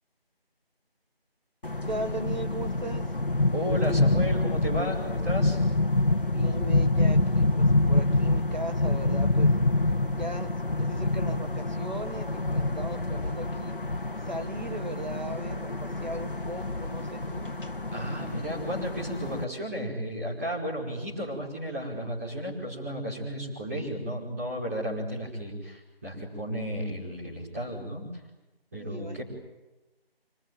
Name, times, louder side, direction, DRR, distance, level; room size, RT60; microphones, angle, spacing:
sound 1, 1.6-19.4, left 2 dB, 60° left, 1.8 m, -26 dB
voice 1, 1.9-3.1 6.3-9.5 10.1-13.8 14.2-17.5 28.8-29.2, right 1 dB, 45° right, 7 dB, 1.7 m, -38 dB
voice 2, 3.5-5.6 17.9-28.1 28.7-29.2, equal, 15° right, -6 dB, 5.3 m, -33 dB
26.5 x 21.0 x 9.4 m, 1.0 s
figure-of-eight pair, 175°, 31 cm